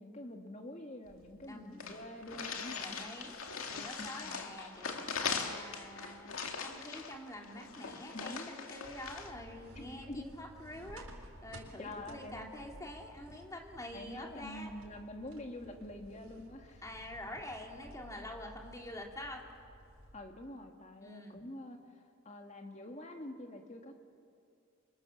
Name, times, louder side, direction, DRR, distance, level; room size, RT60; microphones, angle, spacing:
voice 1, 0.0-3.0 4.0-4.4 8.1-8.5 9.8-10.2 11.8-12.5 13.9-16.8 20.1-21.8 22.3-24.0, left 1 dB, 35° left, 4 dB, 2.2 m, -46 dB
sound 1, 1.1-1.2 1.4-1.5 1.8-9.3, left 5 dB, 80° left, 2.3 m, -40 dB
voice 2, 1.5-1.8 2.8-3.3 3.7-11.1 11.4-14.7 16.8-19.5 21.0-21.4, left 1 dB, 15° left, 1 dB, 2.6 m, -46 dB
sound 2, 8.8-20.2, equal, 85° right, 4.0 m, -55 dB
30.0 x 25.5 x 7.2 m, 2.4 s
head